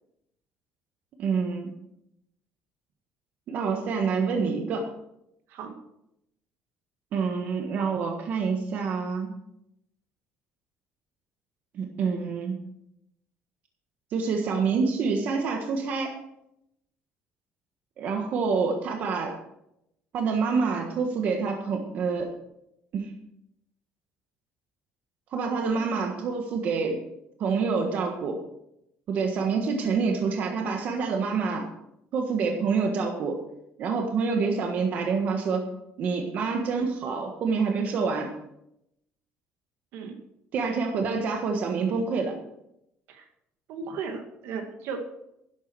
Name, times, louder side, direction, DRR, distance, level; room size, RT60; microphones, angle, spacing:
voice 1, 1.2-1.7 3.5-4.9 7.1-9.3 11.7-12.6 14.1-16.2 18.0-19.4 20.1-22.3 22.9-23.1 25.3-27.0 27.4-28.4 29.1-31.7 32.1-33.4 33.8-35.7 36.0-38.3 40.5-42.3, right 5 dB, 45° right, 3 dB, 1.4 m, -27 dB
voice 2, 43.7-45.0, right 5 dB, 70° right, 5 dB, 2.2 m, -36 dB
12.0 x 11.0 x 4.7 m, 0.81 s
cardioid pair, 180°, 4 cm